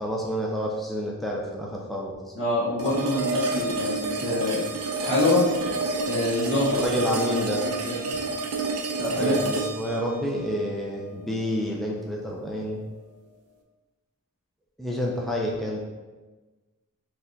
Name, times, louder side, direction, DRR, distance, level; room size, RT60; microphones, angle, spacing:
voice 1, 0.0-2.2 6.7-7.7 9.1-12.8 14.8-15.8, equal, ahead, -3 dB, 0.4 m, -29 dB
voice 2, 2.3-4.6 5.0-5.5 6.0-6.9 7.6-8.0 9.0-9.3, left 2 dB, 60° left, -9 dB, 1.4 m, -25 dB
sound 1, 2.8-11.8, right 2 dB, 80° right, 0.5 m, -29 dB
4.6 x 3.3 x 2.7 m, 1.2 s
head